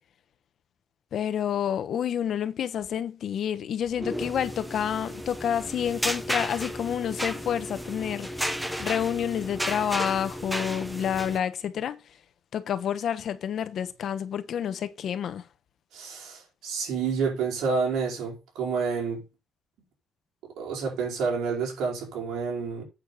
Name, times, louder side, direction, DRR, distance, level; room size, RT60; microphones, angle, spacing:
voice 1, 1.1-8.3 8.8-12.0 12.5-15.4, left 9 dB, 65° left, 1.2 m, -29 dB
sound 1, 3.9-11.4, equal, 5° right, 1.2 m, -33 dB
voice 2, 15.9-19.2 20.4-22.8, right 5 dB, 90° right, 4.5 m, -29 dB
8.7 x 7.0 x 4.1 m
cardioid pair, 95°, 0 cm